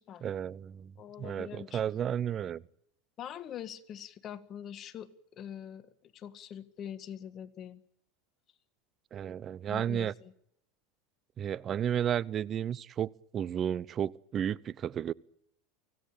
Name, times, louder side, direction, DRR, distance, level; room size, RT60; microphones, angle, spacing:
voice 1, 0.2-0.9 1.2-2.6 9.1-10.1 11.4-15.1, right 9 dB, 35° right, 0.8 m, -33 dB
voice 2, 1.0-1.8 3.2-7.8 9.7-10.3, left 9 dB, 40° left, 1.8 m, -44 dB
24.5 x 17.0 x 8.5 m
supercardioid pair, 110°, 0 cm